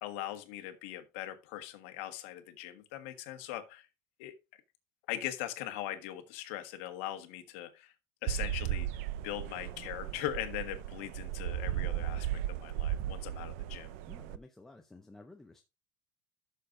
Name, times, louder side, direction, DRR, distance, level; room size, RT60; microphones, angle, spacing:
voice 1, 0.0-3.9 4.2-4.3 5.1-7.9 8.2-13.9, left 13 dB, 80° left, 1.5 m, -40 dB
sound 1, 8.3-14.4, right 12 dB, 85° right, 0.5 m, -36 dB
voice 2, 14.1-15.6, left 2 dB, 5° left, 0.6 m, -53 dB
13.0 x 6.7 x 2.6 m
cardioid pair, 180°, 7 cm